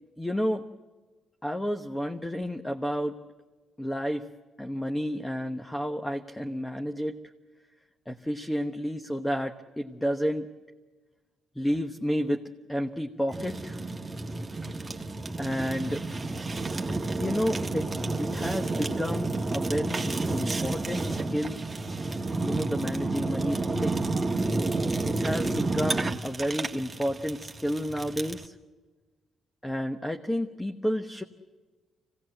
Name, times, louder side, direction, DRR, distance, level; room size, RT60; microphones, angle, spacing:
voice 1, 0.2-0.7 1.4-3.2 3.8-4.3 4.6-7.2 8.1-10.5 11.6-13.8 15.4-16.0 17.2-17.9 18.2-21.6 22.4-24.1 25.0-28.5 29.6-31.2, equal, 10° left, 5 dB, 1.1 m, -31 dB
Fire, 13.3-28.5, right 2 dB, 20° right, 1.5 m, -30 dB
24.5 x 17.5 x 7.9 m, 1.3 s
cardioid pair, 90°, 0 cm